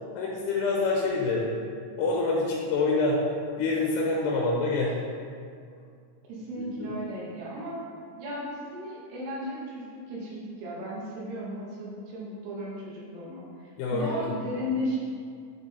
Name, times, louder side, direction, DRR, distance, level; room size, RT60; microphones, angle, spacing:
voice 1, 0.2-1.5 2.0-3.2 3.6-4.9 6.8-6.9 13.8-14.3, left 3 dB, 85° left, -3 dB, 2.4 m, -26 dB
voice 2, 6.3-7.8 8.2-15.0, equal, 70° right, -5 dB, 2.8 m, -35 dB
10.0 x 3.5 x 4.1 m, 2.2 s
omnidirectional pair, 5.5 m